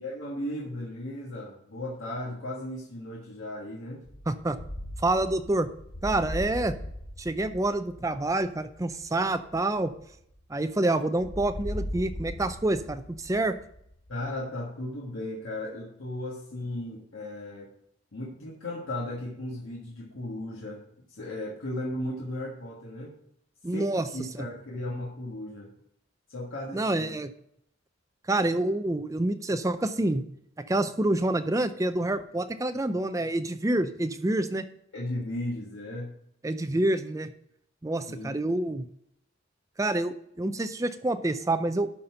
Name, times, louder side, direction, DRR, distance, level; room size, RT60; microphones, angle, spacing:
voice 1, 0.0-4.1 14.1-17.7 18.1-23.2 23.7-25.7 26.3-27.1 34.9-36.1 38.1-38.4, left 1 dB, 80° left, -3 dB, 1.5 m, -36 dB
sound 1, 4.1-10.7 11.2-14.4, equal, 45° left, 1.3 m, -39 dB
voice 2, 4.3-4.6 5.0-5.7 6.0-6.8 7.2-9.9 10.5-13.6 23.6-24.1 24.4-24.5 26.7-27.3 28.3-30.2 30.7-34.6 36.4-37.3 37.8-38.9 39.8-41.9, right 2 dB, 15° right, 10 dB, 0.4 m, -27 dB
11.5 x 4.3 x 5.7 m, 0.73 s
head